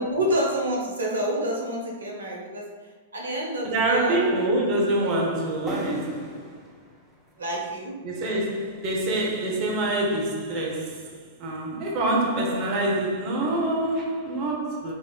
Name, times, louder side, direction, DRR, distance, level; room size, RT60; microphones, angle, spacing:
voice 1, 0.0-2.6 3.1-4.2 7.4-7.9, right 1 dB, 80° right, 0.8 m, -27 dB
voice 2, 3.6-6.6 8.0-14.9, right 1 dB, 40° right, 0.8 m, -26 dB
sound 1, 5.7-9.3, equal, 10° right, 0.6 m, -43 dB
3.5 x 2.5 x 2.3 m
figure-of-eight pair, 105°, 0 cm